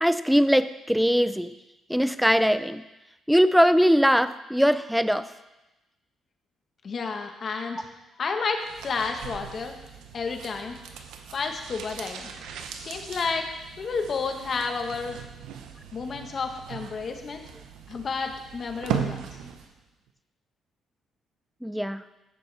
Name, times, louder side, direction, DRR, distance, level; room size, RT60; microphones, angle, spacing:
voice 1, 0.0-1.5 1.9-2.8 3.3-5.3 21.6-22.0, equal, ahead, 13 dB, 0.5 m, -21 dB
voice 2, 6.8-7.9 8.2-9.8 10.1-10.8 11.3-12.3 12.8-13.5 13.8-15.2 15.9-17.4 17.9-19.3, left 4 dB, 45° left, 4 dB, 1.4 m, -31 dB
sound 1, 8.6-19.8 20.1-20.2, right 8 dB, 90° right, 0.8 m, -38 dB
15.0 x 7.0 x 3.5 m, 1.0 s
cardioid pair, 90°, 0 cm